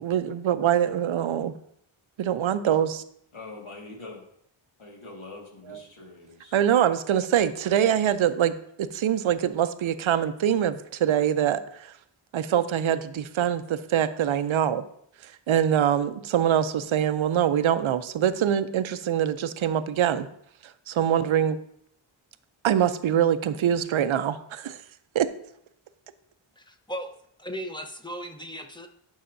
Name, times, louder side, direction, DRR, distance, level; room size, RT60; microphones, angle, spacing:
voice 1, 0.0-1.5 2.2-3.0 5.6-5.8 6.5-11.9 12.3-14.8 15.2-20.3 20.6-21.6 22.6-24.8 25.1-25.3, right 9 dB, 70° right, 13 dB, 0.6 m, -24 dB
voice 2, 3.3-4.2 4.8-6.5, left 3 dB, 70° left, -1 dB, 1.9 m, -43 dB
voice 3, 26.6-28.9, equal, 10° left, 6 dB, 0.7 m, -37 dB
11.0 x 5.6 x 2.6 m, 0.71 s
wide cardioid pair, 80°, 50 cm